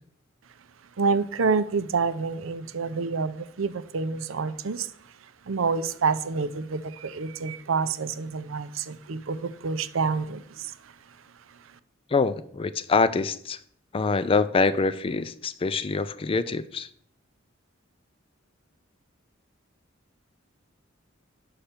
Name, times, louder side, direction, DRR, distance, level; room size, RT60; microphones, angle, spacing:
voice 1, 1.0-4.9 5.2-10.9 11.5-11.8, right 4 dB, 85° right, 0.6 m, -28 dB
voice 2, 12.1-13.6 13.9-16.9, left 4 dB, 30° left, 0.4 m, -25 dB
5.7 x 5.6 x 6.6 m
head